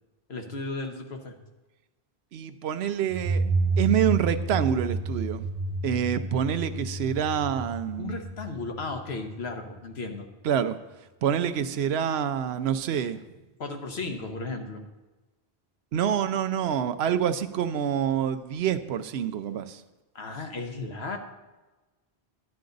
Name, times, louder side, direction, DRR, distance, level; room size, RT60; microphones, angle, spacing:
voice 1, 0.3-1.4 8.0-10.3 13.6-14.8 20.1-21.2, left 3 dB, 80° left, 4 dB, 1.4 m, -35 dB
voice 2, 2.3-3.4 3.8-5.5 5.8-8.1 10.4-10.8 11.2-13.2 15.9-19.8, right 9 dB, 80° right, 11 dB, 0.9 m, -27 dB
sound 1, 3.1-9.6, right 3 dB, 50° right, 1.3 m, -30 dB
10.5 x 9.4 x 3.9 m, 1.1 s
omnidirectional pair, 1.1 m